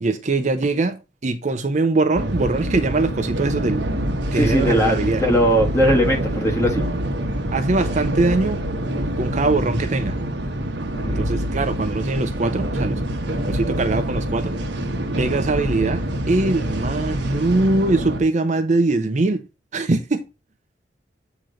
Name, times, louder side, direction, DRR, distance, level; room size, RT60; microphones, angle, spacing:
voice 1, 0.0-3.9 4.3-5.3 7.5-8.7 9.2-10.2 11.2-13.0 13.3-14.6 15.2-19.4 19.7-20.2, right 3 dB, 40° right, 0.6 m, -22 dB
sound 1, 2.2-18.2, right 1 dB, 80° right, 1.0 m, -26 dB
voice 2, 4.3-6.8 10.9-11.3, equal, 15° left, 1.5 m, -19 dB
7.7 x 3.0 x 5.0 m
head